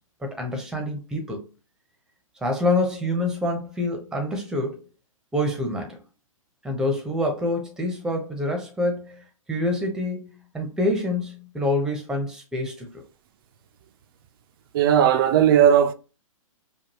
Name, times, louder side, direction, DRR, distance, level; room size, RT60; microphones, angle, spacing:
voice 1, 0.2-1.4 2.4-4.8 5.3-6.0 6.6-9.2 9.5-13.0, left 1 dB, 5° right, 0.9 m, -26 dB
voice 2, 14.7-15.9, right 9 dB, 40° right, 0.5 m, -17 dB
5.1 x 2.3 x 2.9 m
hypercardioid pair, 140°, 18 cm